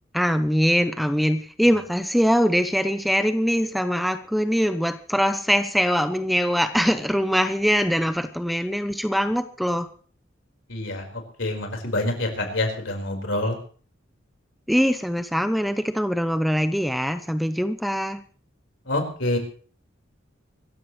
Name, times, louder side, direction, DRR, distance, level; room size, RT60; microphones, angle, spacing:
voice 1, 0.1-9.9 14.7-18.2, equal, ahead, 10 dB, 0.6 m, -22 dB
voice 2, 10.7-11.1 11.4-13.6 18.9-19.4, left 2 dB, 70° left, 2 dB, 4.5 m, -26 dB
25.5 x 14.5 x 3.1 m, 0.43 s
head